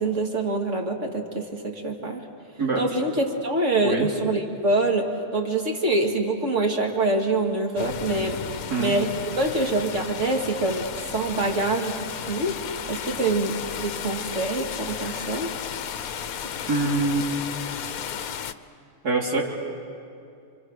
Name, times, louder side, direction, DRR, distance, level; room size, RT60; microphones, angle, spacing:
voice 1, 0.0-2.3 2.8-12.6 12.9-15.5, right 2 dB, 45° right, 2 dB, 2.5 m, -25 dB
sound 1, 7.8-18.5, left 8 dB, 65° left, 1.2 m, -34 dB
voice 2, 16.7-17.5 19.0-19.4, right 3 dB, 65° right, -2 dB, 3.3 m, -24 dB
29.5 x 25.5 x 6.5 m, 2.5 s
omnidirectional pair, 1.8 m